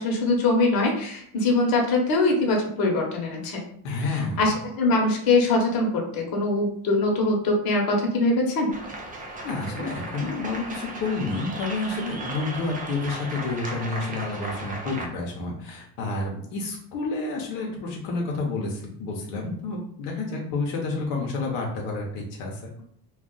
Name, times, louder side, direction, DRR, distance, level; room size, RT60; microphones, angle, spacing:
voice 1, 0.0-3.6 4.0-8.7, left 2 dB, 55° left, -1 dB, 1.0 m, -23 dB
voice 2, 3.8-4.5 9.4-22.6, left 3 dB, 85° left, -1 dB, 0.8 m, -30 dB
sound 1, 8.7-15.1, right 2 dB, 20° right, 0.4 m, -36 dB
2.4 x 2.3 x 3.7 m, 0.65 s
cardioid pair, 115°, 43 cm